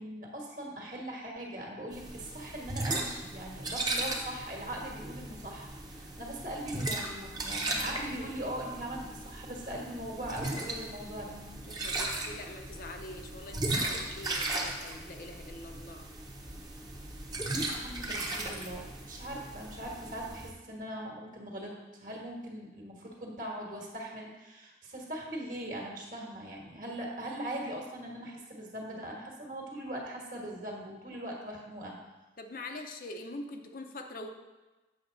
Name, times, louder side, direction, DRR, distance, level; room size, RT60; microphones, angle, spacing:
voice 1, 0.0-11.3 17.8-21.7 22.0-31.9, right 1 dB, 50° right, -1 dB, 1.5 m, -40 dB
sound 1, 1.9-20.5, right 2 dB, 20° right, 0.9 m, -37 dB
voice 2, 11.7-16.1 32.4-34.3, left 2 dB, 50° left, 4 dB, 0.7 m, -44 dB
7.9 x 5.9 x 4.0 m, 1.1 s
head